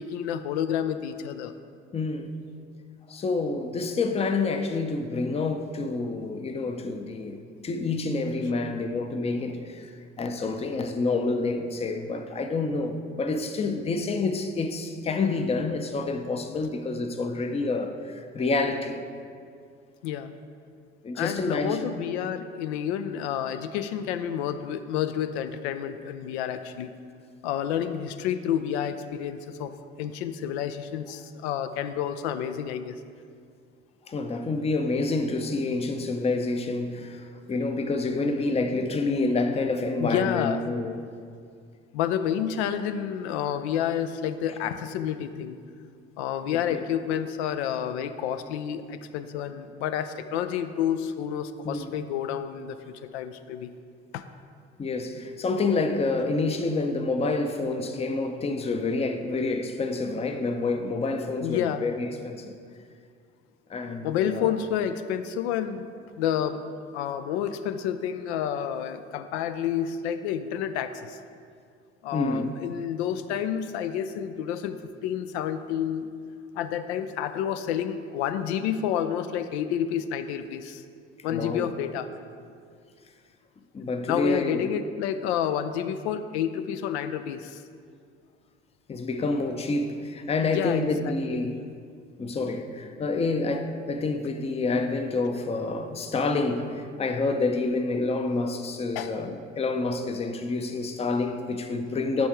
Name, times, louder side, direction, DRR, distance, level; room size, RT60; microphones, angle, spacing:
voice 1, 0.0-1.5 20.0-20.3 21.1-26.9 27.4-29.7 30.0-33.0 40.0-40.7 41.9-45.6 46.2-53.7 54.1-54.2 61.4-61.9 64.0-65.9 66.2-66.6 66.9-71.2 72.0-74.8 75.0-76.1 76.5-80.8 81.2-82.1 84.1-87.6 90.4-91.4 99.0-99.1, left 9 dB, 65° left, 0.5 m, -29 dB
voice 2, 1.9-2.3 3.1-19.0 21.0-21.8 34.1-41.0 46.7-46.8 51.6-51.9 54.8-62.5 63.7-64.5 72.1-72.5 81.3-81.7 83.7-84.6 88.9-91.6 92.2-102.3, left 3 dB, 15° left, 0.5 m, -28 dB
10.5 x 3.5 x 4.6 m
figure-of-eight pair, 60°, 36 cm